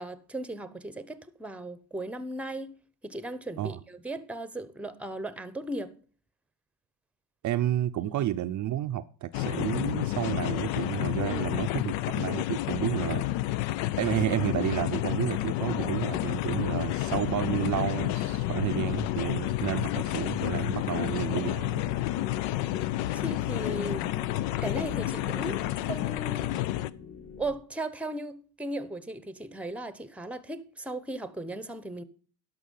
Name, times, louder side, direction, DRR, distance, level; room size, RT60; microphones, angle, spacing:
voice 1, 0.0-2.7 3.0-5.9 8.0-8.2 11.3-11.6 23.1-24.1 24.6-26.6 27.4-32.0, right 1 dB, 5° right, 0.8 m, -37 dB
voice 2, 7.4-13.2 14.0-21.9, right 12 dB, 45° right, 0.5 m, -31 dB
sound 1, 9.3-26.9, left 15 dB, 85° left, 0.6 m, -30 dB
sound 2, 16.9-27.6, left 6 dB, 35° left, 1.4 m, -45 dB
11.5 x 6.2 x 5.4 m
cardioid pair, 105°, 43 cm